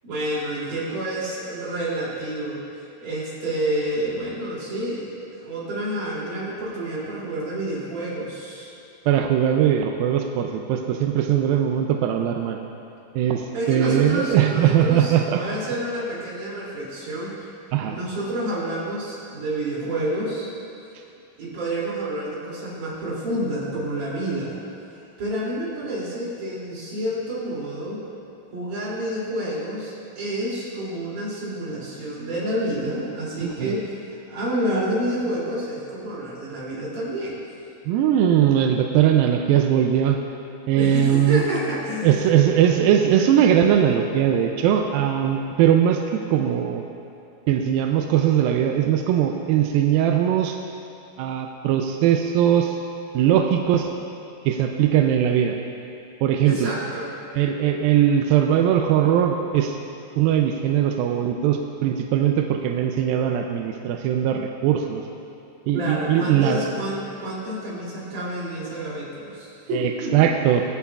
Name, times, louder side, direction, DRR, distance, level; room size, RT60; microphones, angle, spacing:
voice 1, 0.0-2.6 3.0-8.7 13.5-17.4 17.9-20.5 21.4-24.6 25.2-28.0 28.5-34.0 34.3-37.4 40.8-42.2 56.4-57.1 65.7-70.1, right 1 dB, 55° right, -7 dB, 4.3 m, -29 dB
voice 2, 9.1-12.6 13.2-15.4 17.7-18.0 33.4-33.8 37.9-40.2 40.7-41.4 42.0-46.8 47.5-50.6 51.2-52.8 53.1-53.9 54.5-55.6 56.2-56.7 57.4-59.8 60.2-65.0 65.7-66.7 69.7-70.6, right 10 dB, 85° right, 3 dB, 2.1 m, -20 dB
24.0 x 8.6 x 2.4 m, 2.6 s
omnidirectional pair, 4.6 m